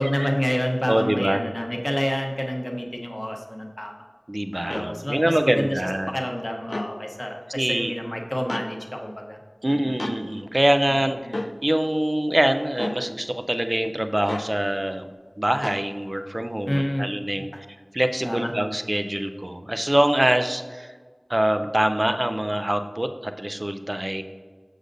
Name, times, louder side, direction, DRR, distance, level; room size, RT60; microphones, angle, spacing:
voice 1, 0.0-3.9 4.7-5.8 6.1-9.4 9.6-9.9 11.2-11.3 16.7-17.1 17.5-17.6 18.2-18.5, equal, 25° left, 1 dB, 0.9 m, -28 dB
voice 2, 0.9-1.4 4.3-6.1 7.5-7.9 9.6-15.1 15.4-17.5 17.9-20.9 21.3-24.2, right 1 dB, 35° right, 8 dB, 0.4 m, -24 dB
sound 1, 4.7-4.9 6.6-6.9 8.5-8.7 10.0-10.2 11.3-11.5 12.8-13.0 14.3-14.5 15.6-15.8, left 1 dB, 65° left, 0.4 m, -31 dB
6.4 x 6.4 x 2.6 m, 1.5 s
wide cardioid pair, 40°, 0 cm